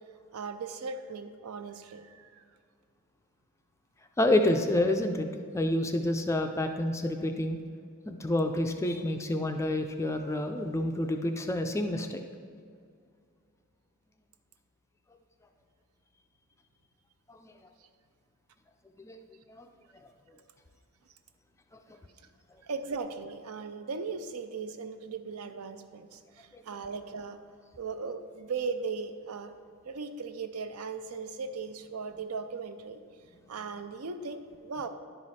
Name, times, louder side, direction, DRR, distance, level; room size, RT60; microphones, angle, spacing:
voice 1, 0.3-2.5 17.8-17.9 22.6-27.4 27.8-29.5 29.9-33.0 33.5-34.9, right 4 dB, 75° right, 10 dB, 0.5 m, -38 dB
voice 2, 4.2-5.3 5.5-7.6 8.1-12.2 17.3-17.5 19.0-19.2 19.5-19.7 26.5-26.6, left 1 dB, 15° left, 5 dB, 0.3 m, -28 dB
11.0 x 4.9 x 4.1 m, 2.2 s
head